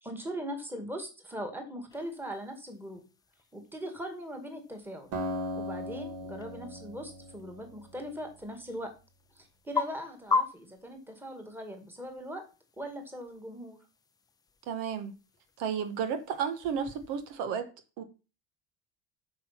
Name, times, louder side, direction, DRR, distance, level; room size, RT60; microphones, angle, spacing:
voice 1, 0.0-3.0 3.5-5.1 5.5-8.9 9.4-12.5 12.8-13.8, equal, 5° right, 2.0 m, -40 dB
sound 1, 1.9-17.4, left 4 dB, 10° left, 0.5 m, -41 dB
Acoustic guitar, 5.1-8.3, equal, 50° right, 2.1 m, -38 dB
voice 2, 14.7-15.1 15.6-17.7 18.0-18.1, right 7 dB, 65° right, 1.4 m, -32 dB
8.5 x 6.3 x 5.8 m
cardioid pair, 160°, 33 cm